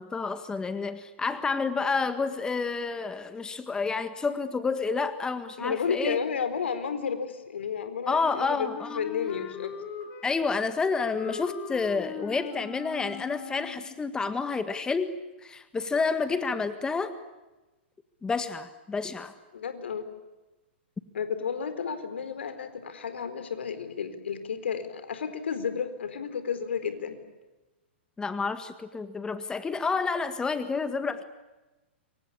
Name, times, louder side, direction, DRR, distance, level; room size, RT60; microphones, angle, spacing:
voice 1, 0.0-6.2 8.1-9.0 10.2-15.1 15.4-17.1 18.2-19.3 28.2-31.2, left 4 dB, 10° left, 11 dB, 1.8 m, -29 dB
voice 2, 5.6-8.7 8.9-9.8 19.5-20.0 21.1-27.2, left 6 dB, 75° left, 11 dB, 4.3 m, -32 dB
Wind instrument woodwind instrument, 8.2-14.0, left 8 dB, 30° left, 4.0 m, -40 dB
28.5 x 24.0 x 8.6 m, 1.1 s
hypercardioid pair, 120°, 6 cm